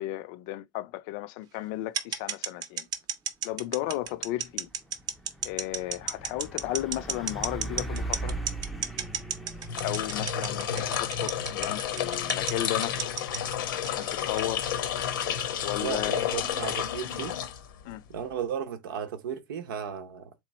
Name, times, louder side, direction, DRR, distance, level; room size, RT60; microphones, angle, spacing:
voice 1, 0.0-2.9 3.4-4.7 5.4-8.4 9.8-13.1 13.8-14.7 15.6-16.1 16.4-16.5 17.8-18.0, left 15 dB, 60° left, 0.4 m, -34 dB
sound 1, 1.9-14.6, right 7 dB, 35° right, 0.7 m, -32 dB
Truck, 3.9-4.2 4.5-17.1, right 2 dB, ahead, 0.5 m, -41 dB
sound 2, 9.6-18.0, left 9 dB, 85° left, 0.8 m, -31 dB
voice 2, 15.8-17.4 18.1-20.3, right 8 dB, 90° right, 0.8 m, -35 dB
3.7 x 3.0 x 4.0 m
supercardioid pair, 125°, 11 cm